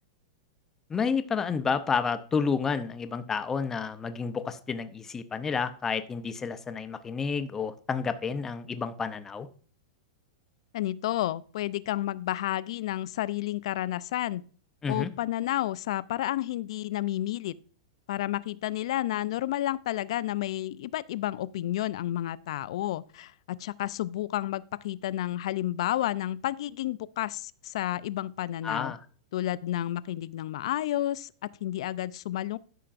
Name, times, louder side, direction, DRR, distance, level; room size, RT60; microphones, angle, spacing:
voice 1, 0.9-9.5 14.8-15.1 28.6-29.0, left 5 dB, 10° left, 0.6 m, -30 dB
voice 2, 10.7-14.4 14.9-17.6 18.1-28.9 29.3-32.6, left 14 dB, 60° left, 0.4 m, -31 dB
12.5 x 5.8 x 2.5 m
supercardioid pair, 160°, 3 cm